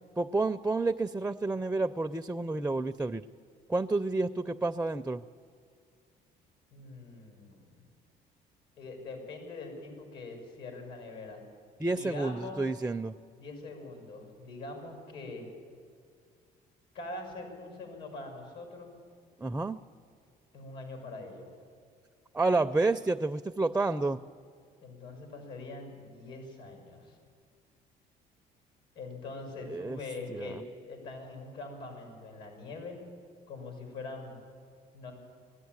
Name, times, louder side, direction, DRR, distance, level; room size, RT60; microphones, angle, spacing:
voice 1, 0.2-3.3 3.7-5.2 11.8-13.2 19.4-19.8 22.3-24.2 29.6-30.0 30.3-30.6, right 3 dB, 10° right, 10 dB, 0.4 m, -30 dB
voice 2, 6.7-7.9 8.8-11.4 11.9-12.6 13.4-15.5 16.9-18.9 20.5-21.5 24.8-27.2 28.9-33.0 33.5-34.4 34.9-35.1, left 2 dB, 80° left, 3 dB, 6.2 m, -43 dB
21.0 x 13.0 x 9.5 m, 2.1 s
cardioid pair, 110°, 17 cm